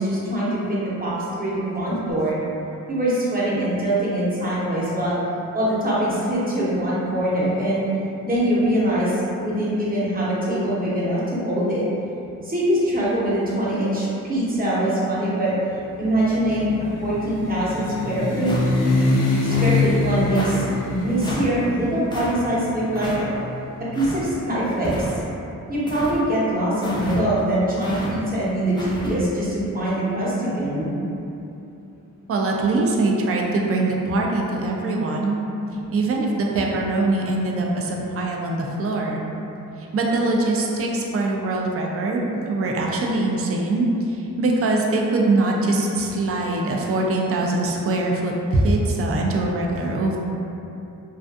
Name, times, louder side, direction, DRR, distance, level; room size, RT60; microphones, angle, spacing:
voice 1, 0.0-2.4 2.9-5.2 5.5-7.9 8.2-11.9 12.4-15.5 16.0-16.7 17.0-18.5 19.4-23.3 23.9-25.2 25.7-30.9, right 1 dB, 25° right, -8 dB, 0.8 m, -23 dB
sound 1, 16.0-24.0, left 3 dB, 70° left, 0.5 m, -25 dB
sound 2, 18.4-18.9 19.4-19.8 20.3-20.6 21.2-21.5 22.1-22.3 22.9-23.2 23.9-24.2 24.8-25.3 25.9-26.2 26.8-27.2 27.8-28.1 28.8-29.1, equal, 15° left, 0.4 m, -31 dB
voice 2, 32.3-35.4 35.9-39.2 39.9-50.2, right 2 dB, 45° right, -1 dB, 0.4 m, -22 dB
2.5 x 2.4 x 2.3 m, 2.8 s
cardioid pair, 75°, 33 cm